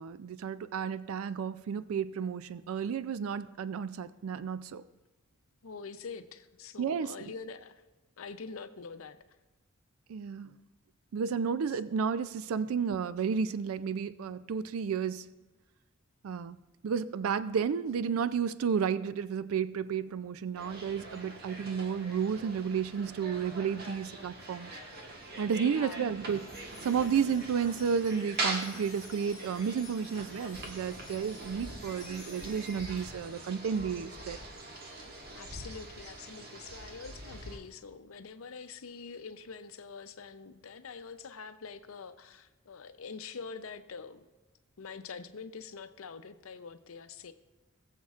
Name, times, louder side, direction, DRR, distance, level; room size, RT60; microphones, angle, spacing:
voice 1, 0.0-4.8 6.8-7.2 10.1-10.5 11.1-15.3 16.2-16.6 16.8-24.8 25.4-34.4, right 6 dB, 80° right, 14 dB, 0.4 m, -32 dB
voice 2, 5.6-7.8 8.2-9.2 25.5-26.0 35.3-44.3 44.8-47.3, left 5 dB, 75° left, 10 dB, 0.6 m, -45 dB
sound 1, 20.5-37.6, right 2 dB, 50° right, 1.4 m, -42 dB
Wind chime, 26.3-33.8, left 3 dB, 20° left, 1.3 m, -54 dB
20.0 x 7.3 x 2.4 m, 1.2 s
head